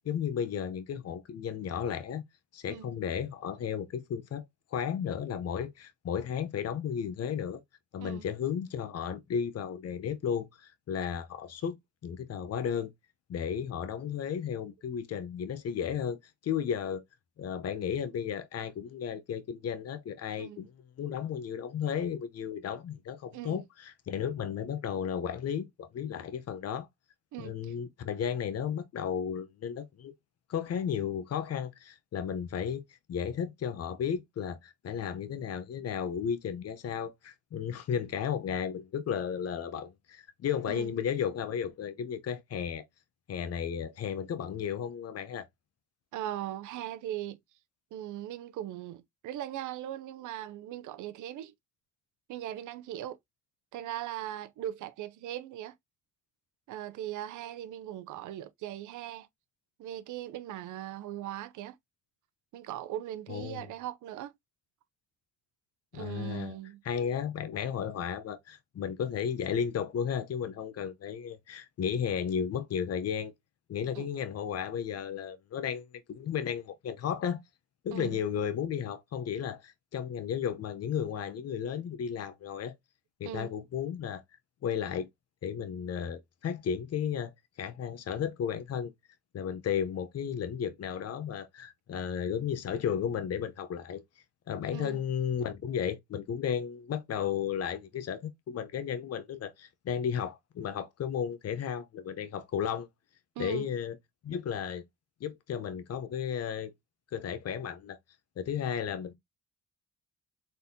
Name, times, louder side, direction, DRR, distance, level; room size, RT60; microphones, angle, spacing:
voice 1, 0.0-2.2 2.5-4.4 4.7-7.6 7.9-11.8 12.0-12.9 13.3-17.0 17.4-20.7 21.0-26.9 27.4-30.1 30.5-32.8 33.1-42.9 43.3-45.5 63.3-63.7 65.9-66.6 66.8-73.3 73.7-77.4 77.8-82.7 83.2-84.2 84.6-85.1 85.4-87.3 87.6-88.9 89.3-94.0 94.5-102.9 103.4-104.0 104.2-104.8 105.2-106.7 107.1-108.0 108.4-109.1, left 8 dB, 55° left, 0.8 m, -34 dB
voice 2, 20.4-20.7 23.3-23.6 27.3-27.7 40.7-41.0 46.1-47.4 47.9-51.5 52.3-53.2 53.7-55.7 56.7-59.3 59.8-61.8 62.5-64.3 65.9-66.8 73.9-74.1 77.9-78.2 83.2-83.5 94.7-95.0 103.4-103.7, right 12 dB, 80° right, 0.6 m, -39 dB
4.2 x 3.4 x 2.7 m
cardioid pair, 90°, 30 cm